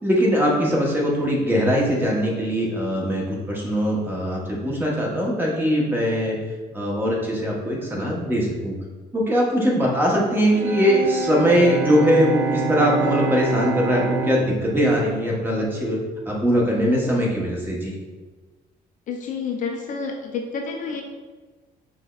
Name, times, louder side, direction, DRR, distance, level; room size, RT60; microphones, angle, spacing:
voice 1, 0.0-6.4 6.7-8.7 9.1-16.0 16.3-17.9, equal, 10° right, -3 dB, 0.9 m, -21 dB
Bowed string instrument, 10.4-16.5, right 3 dB, 70° right, 0.7 m, -28 dB
voice 2, 19.1-21.0, left 5 dB, 50° left, 2 dB, 0.4 m, -29 dB
5.6 x 2.1 x 2.3 m, 1.3 s
cardioid pair, 110°, 17 cm